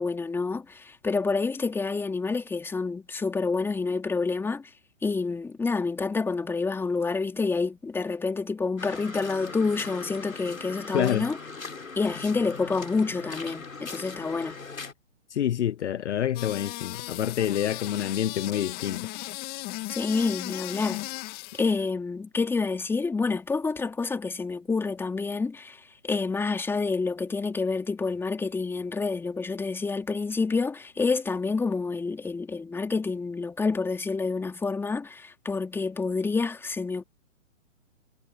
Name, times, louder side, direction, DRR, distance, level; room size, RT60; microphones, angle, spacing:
voice 1, 0.0-4.7 5.0-11.4 12.0-14.6 19.9-21.0 21.6-37.0, left 4 dB, 5° left, 2.7 m, -28 dB
sound 1, 8.8-14.9, left 4 dB, 90° left, 6.1 m, -40 dB
voice 2, 10.9-11.3 15.3-19.1, left 10 dB, 60° left, 0.8 m, -27 dB
sound 2, 16.3-21.8, left 20 dB, 25° left, 2.7 m, -37 dB
hypercardioid pair, 140°, 40 cm